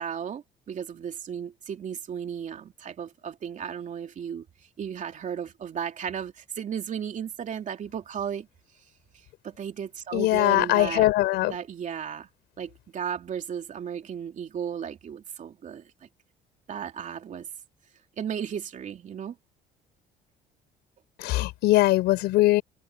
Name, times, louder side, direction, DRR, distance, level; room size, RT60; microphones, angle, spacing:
voice 1, 0.0-4.4 4.8-8.5 9.4-11.1 11.5-12.3 12.6-16.1 16.7-17.5 18.2-19.4, right 8 dB, 45° right, 3.0 m, -35 dB
voice 2, 10.1-11.6 21.2-22.6, left 17 dB, 85° left, 4.6 m, -21 dB
cardioid pair, 110°, 17 cm